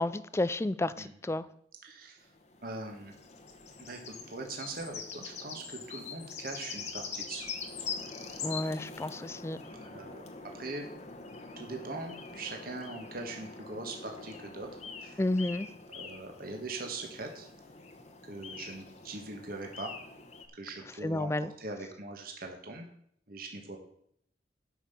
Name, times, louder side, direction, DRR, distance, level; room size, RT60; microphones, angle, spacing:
voice 1, 0.0-1.4 8.4-9.6 15.2-15.7 21.0-21.5, left 2 dB, 15° left, 15 dB, 0.3 m, -31 dB
voice 2, 1.8-2.2 2.6-3.1 3.8-7.5 9.8-10.3 10.5-10.9 11.6-14.7 15.0-15.2 15.9-17.5 18.3-19.9 20.6-22.9 23.3-23.8, right 2 dB, 50° right, 3 dB, 1.5 m, -41 dB
sound 1, 2.2-20.5, left 5 dB, 35° left, 1.1 m, -44 dB
9.1 x 5.7 x 7.0 m, 0.68 s
head